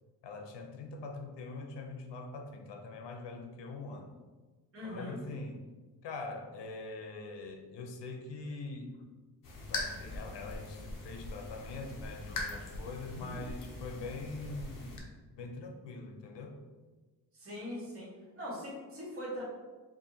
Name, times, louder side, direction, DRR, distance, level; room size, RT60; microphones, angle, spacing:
voice 1, 0.2-4.2 4.8-5.7 6.0-9.0 9.7-15.1 15.4-16.6, left 3 dB, 90° left, 4 dB, 0.7 m, -43 dB
voice 2, 4.7-5.2 13.1-13.4 17.3-18.1 18.3-19.4, equal, 35° right, -8 dB, 1.3 m, -41 dB
sound 1, 9.4-15.0, left 2 dB, 50° left, 0.8 m, -41 dB
4.7 x 2.5 x 2.7 m, 1.3 s
wide cardioid pair, 145°, 41 cm